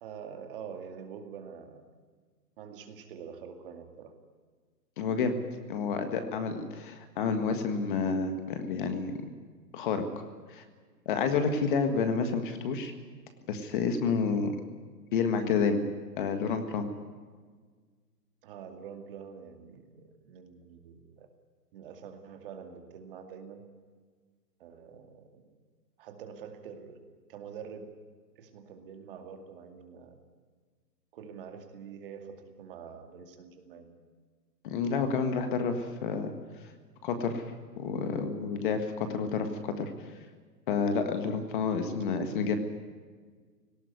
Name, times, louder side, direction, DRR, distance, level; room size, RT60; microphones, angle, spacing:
voice 1, 0.0-1.8 2.6-4.1 18.4-21.3 21.7-23.7 24.6-25.4 26.0-27.0 27.3-27.9 28.4-30.2 31.1-33.9 42.1-42.6, right 7 dB, 35° right, 6 dB, 2.3 m, -46 dB
voice 2, 5.0-5.4 5.7-9.1 9.7-10.0 10.5-10.6 11.1-12.9 13.5-14.6 15.1-15.8 16.2-16.9 34.6-36.3 37.0-37.5 37.8-39.9 40.7-42.6, left 5 dB, 30° left, 8 dB, 1.7 m, -29 dB
18.5 x 18.0 x 9.5 m, 1.5 s
hypercardioid pair, 160°, 50 cm